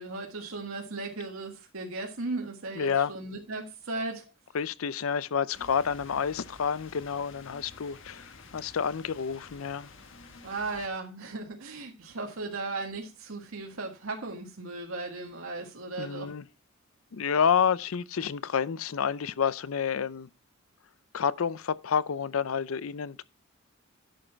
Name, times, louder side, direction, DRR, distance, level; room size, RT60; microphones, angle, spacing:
voice 1, 0.0-4.2 10.4-16.3, right 3 dB, 90° right, 1.6 m, -36 dB
voice 2, 2.7-3.1 4.5-9.9 16.0-16.4 17.1-20.3 21.1-23.2, left 7 dB, 80° left, 0.5 m, -29 dB
sound 1, 5.5-10.9, left 4 dB, 65° left, 1.4 m, -50 dB
11.5 x 6.4 x 4.4 m
head